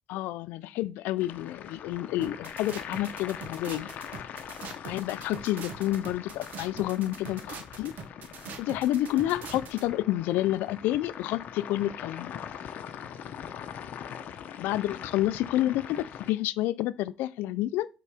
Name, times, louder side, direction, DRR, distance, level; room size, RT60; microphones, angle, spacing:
voice 1, 0.1-3.9 4.9-7.9 8.6-12.4 14.6-17.9, left 14 dB, 90° left, 0.4 m, -29 dB
sound 1, 1.2-16.3, left 9 dB, 60° left, 0.8 m, -42 dB
sound 2, 2.2-9.8, right 6 dB, 60° right, 1.0 m, -43 dB
5.5 x 3.8 x 4.9 m
cardioid pair, 120°, 3 cm